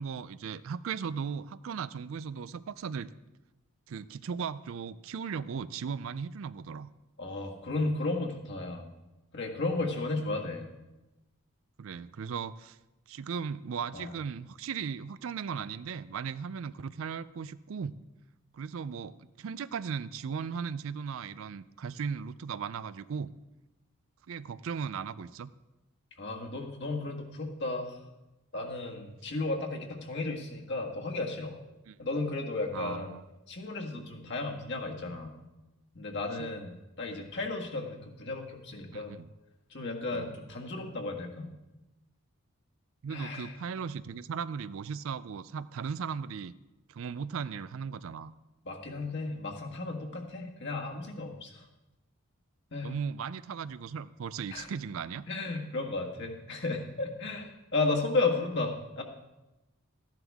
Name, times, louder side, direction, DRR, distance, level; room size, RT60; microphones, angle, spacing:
voice 1, 0.0-3.1 3.9-6.9 9.8-10.1 11.8-12.8 13.1-17.9 18.5-23.3 24.3-25.5 31.9-32.0 32.7-33.2 36.4-36.5 38.9-39.3 40.1-40.3 43.0-46.5 46.9-48.3 52.8-55.3, right 6 dB, 65° right, 16 dB, 0.4 m, -37 dB
voice 2, 7.2-8.8 9.3-10.7 13.9-14.1 26.2-28.0 28.5-31.5 32.0-33.1 33.5-35.3 35.9-36.7 37.0-39.1 39.7-41.5 43.1-43.6 48.6-51.7 52.7-52.9 54.5-54.7 55.3-59.0, left 3 dB, 55° left, 1 dB, 1.6 m, -34 dB
14.0 x 10.5 x 3.5 m, 1.0 s
head